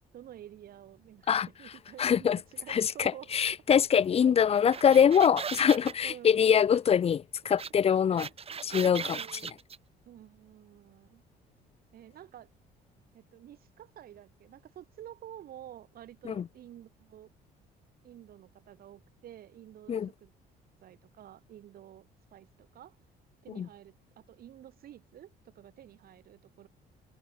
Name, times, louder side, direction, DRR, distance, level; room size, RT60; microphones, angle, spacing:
voice 1, 0.1-3.3 4.2-4.3 4.7-5.4 5.7-7.1 8.1-8.7 9.0-9.6 10.1-11.2 11.9-12.5 13.1-17.3 18.0-20.3 20.8-23.0 23.4-26.7, right 11 dB, 60° right, 7.2 m, -50 dB
voice 2, 2.0-2.4 2.7-7.2 7.5-8.3 8.6-9.2 16.2-16.4 19.9-20.1 23.6-23.7, left 8 dB, 35° left, 0.9 m, -24 dB
sound 1, 4.5-5.9 7.6-7.7 8.0-9.8, right 6 dB, 35° right, 6.9 m, -38 dB
cardioid pair, 110°, 17 cm